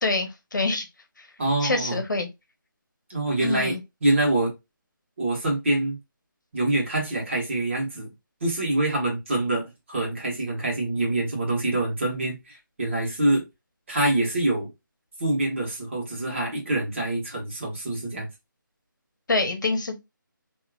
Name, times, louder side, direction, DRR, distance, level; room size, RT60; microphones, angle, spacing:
voice 1, 0.0-0.9 1.2-1.3 1.6-2.3 3.4-3.8 19.3-20.0, left 3 dB, 60° left, 1.0 m, -26 dB
voice 2, 1.4-2.0 3.1-4.5 5.2-6.0 6.5-8.1 8.4-13.4 13.9-14.7 15.2-18.3, right 2 dB, 35° right, 1.5 m, -25 dB
3.2 x 2.8 x 2.4 m
figure-of-eight pair, 175°, 11 cm